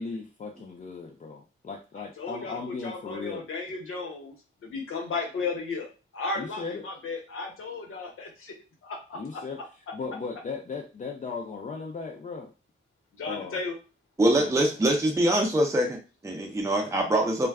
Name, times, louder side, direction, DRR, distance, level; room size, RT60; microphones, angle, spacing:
voice 1, 0.0-3.5 6.4-6.8 9.1-9.6 9.9-12.5 13.2-13.6 14.2-14.7, left 4 dB, 40° left, 1 dB, 0.4 m, -37 dB
voice 2, 1.9-4.3 4.6-5.9 6.1-8.5 8.8-9.9 13.2-13.8, left 3 dB, 80° left, 1 dB, 0.9 m, -35 dB
voice 3, 14.2-17.5, right 1 dB, 15° right, 1 dB, 0.5 m, -24 dB
2.2 x 2.2 x 3.4 m, 0.32 s
wide cardioid pair, 120°, 21 cm